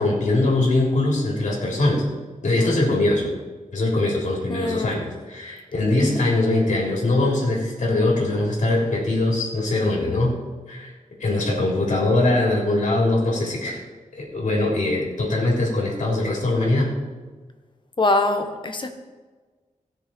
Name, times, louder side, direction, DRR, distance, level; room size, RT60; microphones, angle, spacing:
voice 1, 0.0-2.0 2.4-3.3 3.7-10.4 10.7-10.9 11.2-13.8 14.1-16.9, left 2 dB, 65° left, -3 dB, 3.3 m, -22 dB
voice 2, 4.5-5.1 18.0-19.0, left 2 dB, 35° left, 6 dB, 1.3 m, -23 dB
17.0 x 6.6 x 4.5 m, 1.3 s
wide cardioid pair, 115°, 14 cm